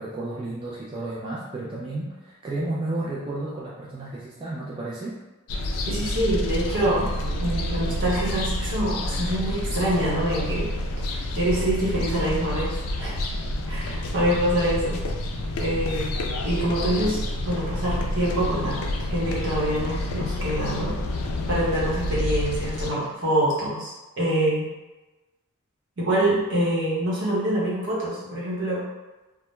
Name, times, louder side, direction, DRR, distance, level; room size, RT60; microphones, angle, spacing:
voice 1, 0.0-5.1, right 2 dB, 25° right, -7 dB, 0.3 m, -32 dB
sound 1, 5.5-22.9, left 1 dB, 85° left, 0.3 m, -28 dB
voice 2, 5.9-7.1 7.4-10.7 11.1-12.7 13.0-13.1 13.7-15.0 15.6-16.2 16.4-21.0 21.5-24.7 26.0-28.8, right 1 dB, 60° right, -6 dB, 0.9 m, -25 dB
2.2 x 2.1 x 3.0 m, 1.1 s
head